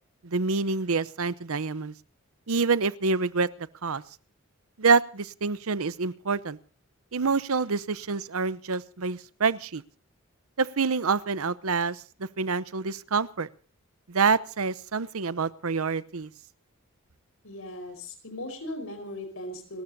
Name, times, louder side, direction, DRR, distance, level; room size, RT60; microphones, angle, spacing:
voice 1, 0.2-1.9 2.5-3.5 3.8-4.0 4.8-6.6 7.1-9.8 10.6-12.0 12.4-13.5 14.1-16.3, right 4 dB, 85° right, 16 dB, 0.8 m, -26 dB
voice 2, 17.4-19.8, left 1 dB, 80° left, 8 dB, 4.8 m, -38 dB
30.0 x 14.0 x 2.7 m, 0.38 s
head